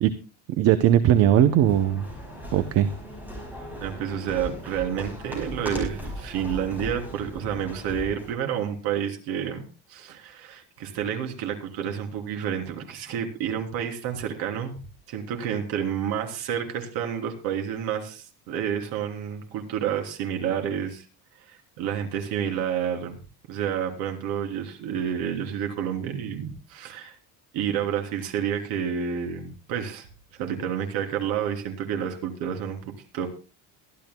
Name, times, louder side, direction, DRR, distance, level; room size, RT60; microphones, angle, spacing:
voice 1, 0.6-2.1 2.5-2.9, right 11 dB, 40° right, 11 dB, 0.6 m, -19 dB
sound 1, 1.2-8.4, equal, 5° right, 5.4 m, -38 dB
voice 2, 3.7-14.7 15.1-21.1 21.5-23.2 23.5-27.1 27.5-30.1 30.3-33.3, right 8 dB, 70° right, 3 dB, 3.2 m, -29 dB
23.0 x 12.5 x 2.2 m, 0.34 s
cardioid pair, 180°, 39 cm